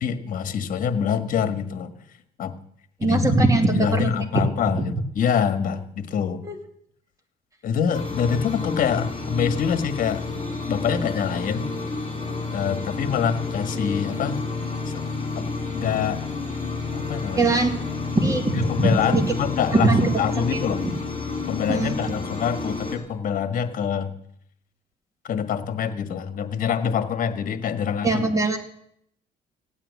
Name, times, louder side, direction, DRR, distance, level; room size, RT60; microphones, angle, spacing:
voice 1, 0.0-2.0 2.4-2.5 3.0-3.2 3.7-6.4 7.6-10.3 10.7-11.7 12.5-14.4 14.9-15.0 15.4-16.3 16.9-17.6 18.5-20.9 21.5-24.1 25.2-28.3, left 7 dB, 55° left, 10 dB, 1.6 m, -25 dB
voice 2, 3.0-4.1 4.7-4.9 6.4-6.5 17.3-17.7 18.1-19.2 19.7-20.1 20.8-20.9 21.7-22.0 28.0-28.6, right 2 dB, 20° right, 5 dB, 2.5 m, -21 dB
sound 1, 7.9-23.0, left 3 dB, 30° left, 6.9 m, -30 dB
16.5 x 9.1 x 8.3 m, 0.71 s
cardioid pair, 110°, 17 cm